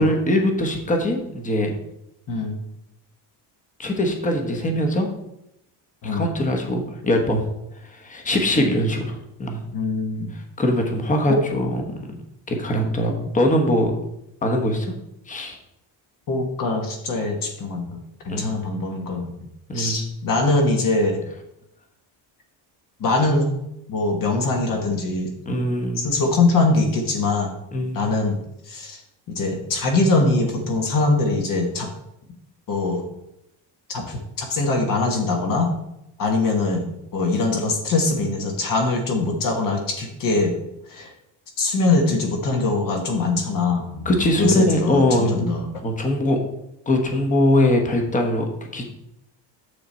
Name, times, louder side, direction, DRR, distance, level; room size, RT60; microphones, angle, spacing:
voice 1, 0.0-1.7 3.8-5.1 6.0-7.4 7.9-9.6 10.6-12.1 12.5-13.9 14.4-14.9 15.3-15.6 18.3-18.5 19.7-20.0 25.4-26.2 27.7-28.0 44.0-46.4 46.9-48.8, left 1 dB, 15° left, 3 dB, 1.1 m, -22 dB
voice 2, 2.3-2.6 6.0-6.3 8.5-8.7 9.7-10.3 11.3-11.4 11.9-12.2 16.3-18.0 18.2-19.3 19.7-21.2 23.0-23.5 23.9-25.3 26.0-27.5 27.9-28.4 28.7-29.0 29.3-31.9 32.7-33.0 33.9-35.7 36.2-40.5 40.9-41.1 41.6-45.7, left 3 dB, 45° left, 3 dB, 1.3 m, -22 dB
6.7 x 6.6 x 4.3 m, 0.82 s
cardioid pair, 165°, 45 cm